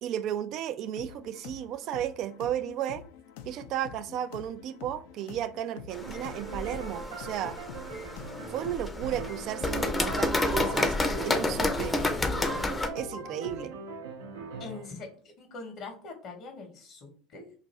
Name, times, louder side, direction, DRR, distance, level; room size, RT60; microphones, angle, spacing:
voice 1, 0.0-3.0 3.5-7.6 8.5-11.0 11.2-12.0 12.9-13.7, right 11 dB, 60° right, 0.3 m, -34 dB
sound 1, 1.0-13.8, left 8 dB, 75° left, 0.4 m, -47 dB
sound 2, 5.9-12.9, left 2 dB, 15° left, 0.6 m, -30 dB
sound 3, 6.0-15.0, right 3 dB, 85° right, 0.7 m, -41 dB
voice 2, 14.6-17.5, left 3 dB, 55° left, 0.9 m, -43 dB
2.5 x 2.4 x 4.1 m
hypercardioid pair, 85°, 0 cm